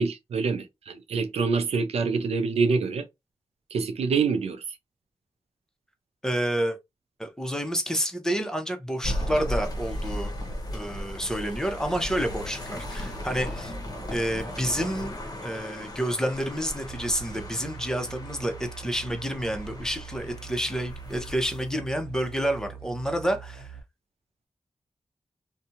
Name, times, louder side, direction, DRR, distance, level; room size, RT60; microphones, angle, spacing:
voice 1, 0.0-3.0 3.7-4.6, right 5 dB, 90° right, 0.5 m, -26 dB
voice 2, 6.2-6.8 7.2-10.3 10.7-13.7 14.1-15.1 15.4-23.8, equal, 5° left, 0.8 m, -29 dB
Train passing level crossing, 9.0-21.7, left 1 dB, 40° left, 0.9 m, -36 dB
sound 1, 16.8-23.8, right 6 dB, 60° right, 0.8 m, -43 dB
2.6 x 2.2 x 2.7 m
cardioid pair, 55°, 10 cm